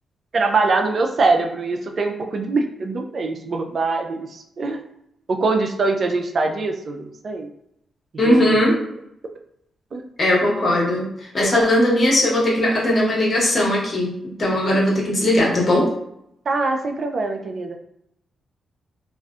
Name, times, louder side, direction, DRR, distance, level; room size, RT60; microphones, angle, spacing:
voice 1, 0.3-4.8 5.3-7.5 8.2-8.6 9.9-10.0 16.5-17.8, right 3 dB, 55° right, 3 dB, 0.3 m, -23 dB
voice 2, 8.2-8.8 10.2-14.1 14.4-15.9, left 1 dB, 45° left, -5 dB, 1.2 m, -18 dB
2.4 x 2.2 x 2.4 m, 0.78 s
supercardioid pair, 55°, 0 cm